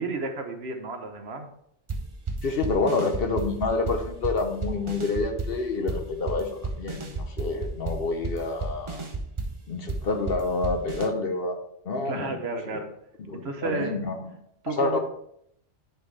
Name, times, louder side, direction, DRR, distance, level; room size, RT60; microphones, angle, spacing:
voice 1, 0.0-1.5 12.0-12.9 13.3-14.0 14.6-15.0, right 3 dB, 60° right, 6 dB, 1.1 m, -32 dB
sound 1, 1.9-11.1, right 3 dB, 30° right, 0.6 m, -32 dB
voice 2, 2.4-9.1 9.7-11.6 11.9-12.3 13.2-14.3 14.7-15.0, left 3 dB, 55° left, 5 dB, 1.0 m, -28 dB
10.5 x 4.5 x 3.3 m, 0.72 s
omnidirectional pair, 1.3 m